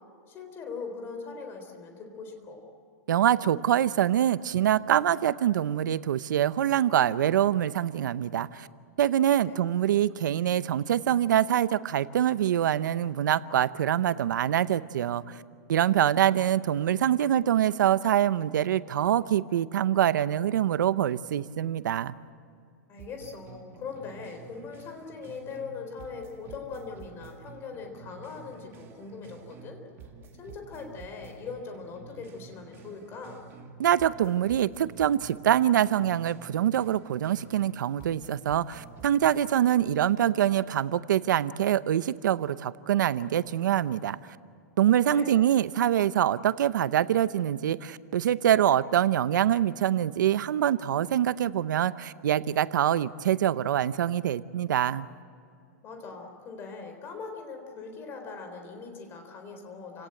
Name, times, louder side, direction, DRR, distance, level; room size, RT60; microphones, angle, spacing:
voice 1, 0.3-2.6 9.5-9.6 22.9-29.8 30.3-33.4 45.0-45.4 55.8-60.1, left 5 dB, 25° left, 4 dB, 3.9 m, -41 dB
voice 2, 3.1-8.7 9.0-15.4 15.7-22.1 33.8-44.2 44.8-55.1, right 11 dB, 85° right, 16 dB, 0.8 m, -25 dB
sound 1, 23.0-25.7 26.0-29.7 30.0-33.7 34.0-37.7 38.0-39.4, right 5 dB, 25° right, 2.1 m, -49 dB
29.5 x 17.5 x 7.9 m, 2.4 s
supercardioid pair, 160°, 10 cm